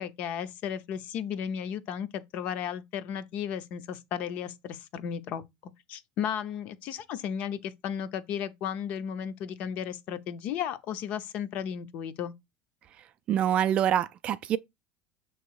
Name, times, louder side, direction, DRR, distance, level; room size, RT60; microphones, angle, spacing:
voice 1, 0.0-5.4 5.9-12.3, left 8 dB, 45° left, 0.6 m, -34 dB
voice 2, 13.3-14.6, right 10 dB, 30° right, 0.3 m, -25 dB
7.3 x 3.1 x 4.6 m
cardioid pair, 170°, 4 cm